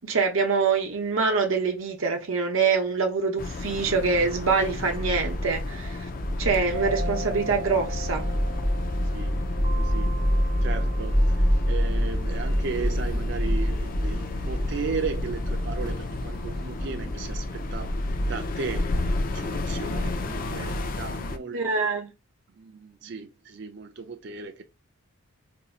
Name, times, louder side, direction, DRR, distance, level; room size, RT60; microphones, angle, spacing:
voice 1, 0.0-6.1 6.4-8.3 21.5-22.1, right 4 dB, 70° right, 0.8 m, -25 dB
sound 1, 3.4-21.4, left 2 dB, 40° left, 0.3 m, -33 dB
sound 2, 4.4-20.6, equal, ahead, 0.8 m, -28 dB
sound 3, 6.7-11.9, right 2 dB, 70° left, 0.8 m, -39 dB
voice 2, 9.1-17.9 18.3-19.0 19.3-21.9 22.6-24.6, right 5 dB, 50° right, 0.4 m, -36 dB
4.0 x 2.6 x 2.4 m
head